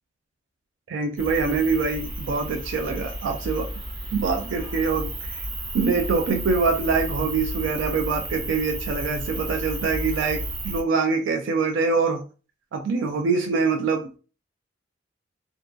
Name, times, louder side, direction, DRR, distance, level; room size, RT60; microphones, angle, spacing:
voice 1, 0.9-3.7 4.1-5.4 5.7-12.2 12.7-14.1, right 4 dB, 80° right, 0.3 m, -24 dB
sound 1, 1.2-10.8, right 1 dB, 60° right, 1.1 m, -32 dB
2.5 x 2.2 x 2.3 m
head